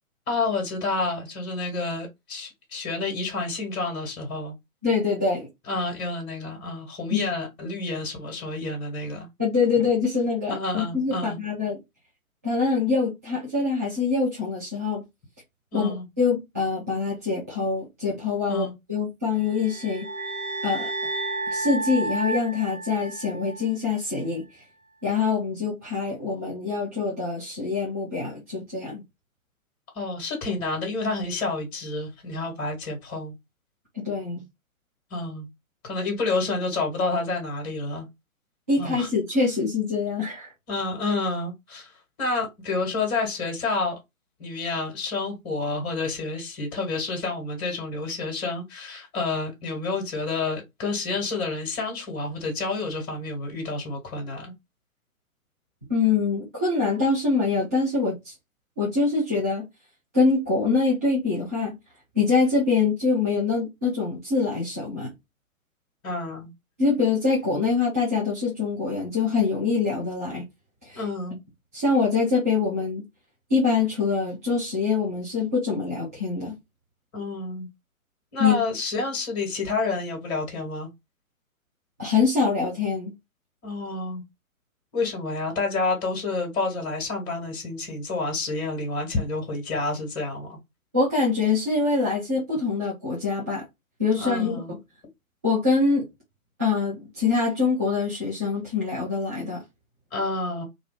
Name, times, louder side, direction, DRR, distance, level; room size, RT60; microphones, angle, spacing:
voice 1, 0.3-4.5 5.7-9.3 10.5-11.4 15.7-16.0 18.5-18.7 29.9-33.3 35.1-35.5 35.8-38.1 38.8-39.1 40.7-44.0 44.4-54.5 66.0-66.5 70.9-71.4 77.1-77.7 78.3-80.9 83.6-84.2 84.9-90.6 94.2-94.7 100.1-100.6, left 3 dB, 25° left, 1.4 m, -29 dB
voice 2, 4.8-5.5 7.1-7.3 9.4-11.8 12.4-15.0 15.7-20.1 20.6-20.9 21.5-24.6 25.0-29.0 33.9-34.4 38.7-40.5 55.9-58.3 58.8-59.7 60.1-61.7 62.1-65.1 66.8-70.5 70.8-71.0 71.7-73.0 73.5-76.5 78.4-78.6 82.0-83.1 90.9-93.6 94.0-94.8 95.4-96.1 96.6-99.6, left 4 dB, 10° right, 0.4 m, -24 dB
sound 1, 19.4-23.7, right 2 dB, 80° right, 0.9 m, -31 dB
2.6 x 2.4 x 3.4 m
figure-of-eight pair, 125°, 42 cm